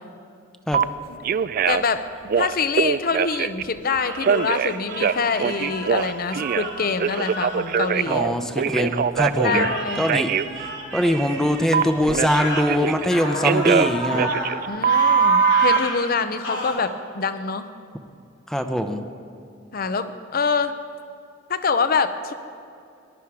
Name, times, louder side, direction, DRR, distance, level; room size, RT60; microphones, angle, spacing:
Telephone, 0.7-0.8 1.2-1.9 2.2-3.6 4.2-6.7 7.0-9.7 10.1-10.4 11.7-13.1 13.4-15.8, right 7 dB, 50° right, 0.3 m, -22 dB
voice 1, 1.7-2.1 2.4-8.3 9.4-10.0 14.7-17.7 19.7-20.7 21.5-22.3, left 5 dB, 50° left, 11 dB, 0.7 m, -25 dB
sound 1, 3.8-8.7 9.4-13.8, right 3 dB, 85° right, 3.0 m, -36 dB
voice 2, 8.1-9.7 10.0-10.3 10.9-14.3 18.5-19.0, equal, 5° left, 6 dB, 0.7 m, -22 dB
sound 2, 12.3-12.7 13.1-14.6 14.9-16.0 16.4-16.7, left 1 dB, 80° left, 3.1 m, -28 dB
18.5 x 11.5 x 4.8 m, 2.4 s
head